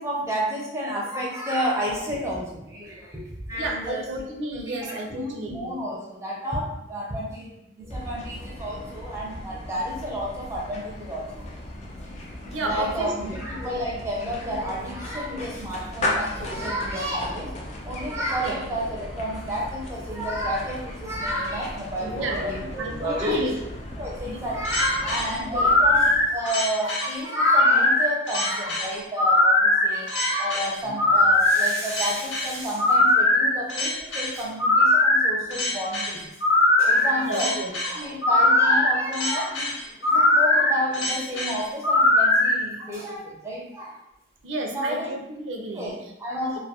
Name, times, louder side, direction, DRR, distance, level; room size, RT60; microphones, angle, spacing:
voice 1, 0.0-3.2 3.5-4.0 4.5-4.6 4.9-11.4 12.6-17.5 17.8-23.6 24.0-36.2 36.8-39.7 40.0-44.0 44.7-45.1 45.7-46.6, equal, 15° right, -4 dB, 0.5 m, -30 dB
voice 2, 3.5-5.8 12.5-13.4 18.4-18.6 22.0-23.5 24.2-24.4 25.4-25.8 37.1-37.7 42.9-43.0 44.4-46.1 46.5-46.6, right 2 dB, 80° right, 2 dB, 0.5 m, -32 dB
sound 1, 7.9-26.5, left 1 dB, 35° left, 0.3 m, -36 dB
sound 2, 24.6-42.5, left 2 dB, 75° left, 0.6 m, -20 dB
2.3 x 2.1 x 2.8 m, 0.85 s
head